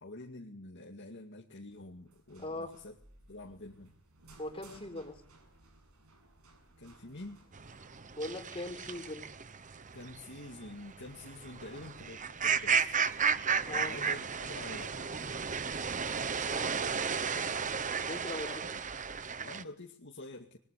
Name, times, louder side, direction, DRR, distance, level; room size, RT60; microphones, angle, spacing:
voice 1, 0.0-3.0 3.3-3.9 6.8-7.4 9.9-13.0 13.8-15.0 18.3-18.7 19.4-20.6, left 2 dB, 55° left, 0 dB, 2.3 m, -47 dB
sound 1, 1.7-19.3, right 1 dB, 80° right, 7.5 m, -61 dB
voice 2, 2.4-2.7 4.4-5.2 8.1-9.3 13.6-13.9 16.4-16.8 18.0-18.7, left 1 dB, 25° left, 5 dB, 4.5 m, -40 dB
sound 2, 7.5-19.6, right 6 dB, 35° right, 1.0 m, -34 dB
27.5 x 22.0 x 8.3 m, 0.62 s
head